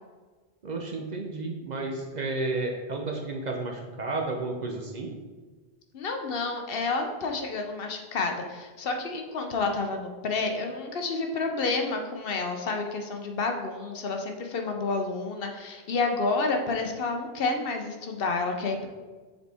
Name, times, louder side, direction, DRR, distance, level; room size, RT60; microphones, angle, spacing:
voice 1, 0.6-5.1, right 3 dB, 45° right, 2 dB, 0.7 m, -32 dB
voice 2, 5.9-18.9, left 3 dB, 65° left, 4 dB, 0.9 m, -29 dB
7.1 x 4.1 x 3.4 m, 1.3 s
omnidirectional pair, 1.1 m